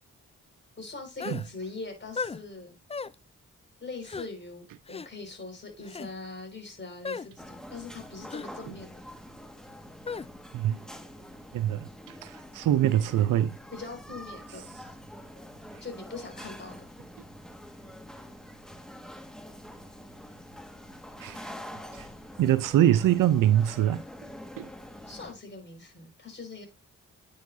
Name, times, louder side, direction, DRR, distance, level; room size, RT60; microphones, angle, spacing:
voice 1, 0.8-2.8 3.8-9.0 13.7-14.7 15.8-16.8 25.1-26.7, left 3 dB, 35° left, 5.0 m, -42 dB
sound 1, 1.2-1.5 2.2-2.4 2.9-3.1 4.1-4.3 4.9-5.1 5.8-6.1 7.0-7.3 8.3-8.5 10.1-10.3, left 5 dB, 20° left, 0.4 m, -35 dB
sound 2, 7.4-25.3, equal, ahead, 1.6 m, -46 dB
voice 2, 11.5-11.9 12.2-13.5 21.2-21.4 21.9-22.1 22.4-24.0 24.6-24.7, right 12 dB, 85° right, 0.6 m, -23 dB
9.3 x 6.5 x 2.7 m
cardioid pair, 55°, 31 cm